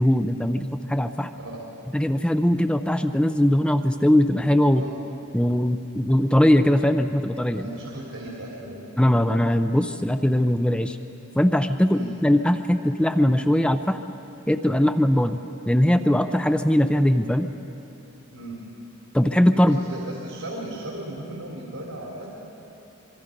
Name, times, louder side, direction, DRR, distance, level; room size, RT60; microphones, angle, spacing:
voice 1, 0.0-1.3 1.9-4.8 5.3-7.7 9.0-11.0 11.4-14.0 14.5-15.4 15.7-17.5 19.1-19.8, left 1 dB, 5° left, 8 dB, 0.4 m, -20 dB
voice 2, 7.6-8.8 11.9-12.1 18.3-18.6 19.6-22.3, right 1 dB, 85° right, -3 dB, 3.6 m, -36 dB
26.0 x 23.5 x 5.2 m, 3.0 s
head